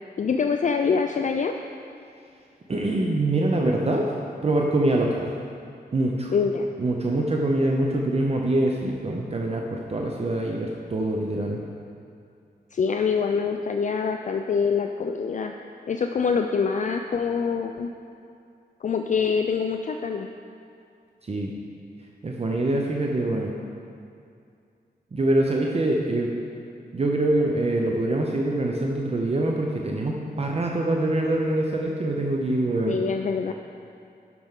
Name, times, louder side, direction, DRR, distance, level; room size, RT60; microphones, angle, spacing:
voice 1, 0.2-1.5 6.3-6.7 12.7-15.5 15.9-17.9 18.8-20.3 32.9-33.5, left 5 dB, 45° left, 5 dB, 0.4 m, -25 dB
voice 2, 2.7-4.1 4.4-5.3 5.9-6.3 6.8-11.6 21.2-21.5 22.2-23.5 25.1-26.3 26.9-33.0, right 2 dB, 40° right, 0 dB, 0.7 m, -24 dB
12.0 x 6.0 x 3.7 m, 2.4 s
cardioid pair, 70°, 17 cm